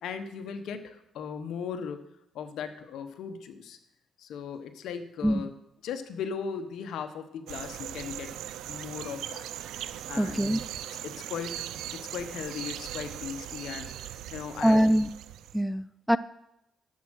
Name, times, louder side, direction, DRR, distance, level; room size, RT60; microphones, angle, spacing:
voice 1, 0.0-2.0 2.3-3.8 4.2-5.5 5.8-8.3 8.7-9.5 10.1-10.5 11.0-14.9, left 7 dB, 75° left, 8 dB, 1.1 m, -38 dB
sound 1, 7.5-15.6, right 11 dB, 85° right, 0.5 m, -39 dB
voice 2, 10.2-10.6 14.6-15.1 15.5-16.2, equal, ahead, 14 dB, 0.4 m, -23 dB
11.0 x 7.5 x 6.4 m, 0.83 s
cardioid pair, 90°, 0 cm